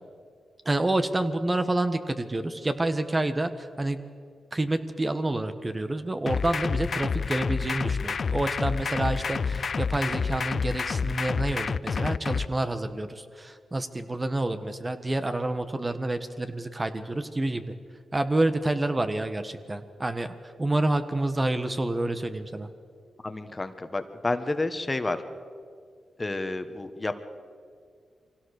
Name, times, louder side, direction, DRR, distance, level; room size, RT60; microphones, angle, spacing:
voice 1, 0.6-4.0 4.5-17.6 18.1-22.7, right 2 dB, 30° right, 9 dB, 1.4 m, -28 dB
sound 1, 6.3-12.5, left 5 dB, 60° left, 0.4 m, -29 dB
voice 2, 23.2-25.2 26.2-27.1, left 2 dB, 30° left, 9 dB, 1.4 m, -30 dB
23.5 x 17.0 x 6.6 m, 2.1 s
supercardioid pair, 50°, 0 cm